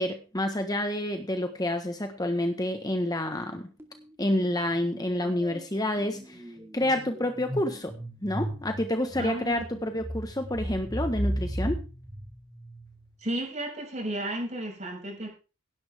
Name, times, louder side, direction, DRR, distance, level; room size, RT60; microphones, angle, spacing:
voice 1, 0.0-3.7 4.2-6.4 6.7-11.8, left 1 dB, 20° left, 6 dB, 1.4 m, -29 dB
sound 1, 3.8-4.1 4.4-13.2, right 1 dB, 10° right, 2.3 m, -36 dB
voice 2, 9.2-9.6 13.2-15.3, right 1 dB, 35° right, 1 dB, 6.6 m, -33 dB
17.5 x 11.5 x 3.6 m, 0.33 s
head